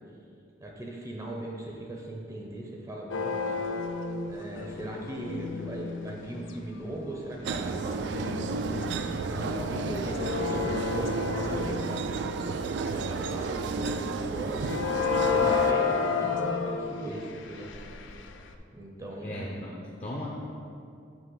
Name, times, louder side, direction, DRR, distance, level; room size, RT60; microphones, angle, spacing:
voice 1, 0.6-3.5 4.3-8.8 9.4-12.2 12.9-14.8 15.2-17.7 18.7-19.7, right 1 dB, 15° right, -1 dB, 0.5 m, -39 dB
sound 1, 3.1-6.5 7.1-7.3 7.9-13.3 13.9-14.2 14.6-18.5, left 5 dB, 80° left, 0.4 m, -31 dB
sound 2, 7.4-15.7, right 4 dB, 65° right, 0.3 m, -32 dB
voice 2, 19.2-20.3, left 1 dB, 35° left, -3 dB, 0.6 m, -37 dB
8.2 x 2.9 x 5.4 m, 2.5 s
head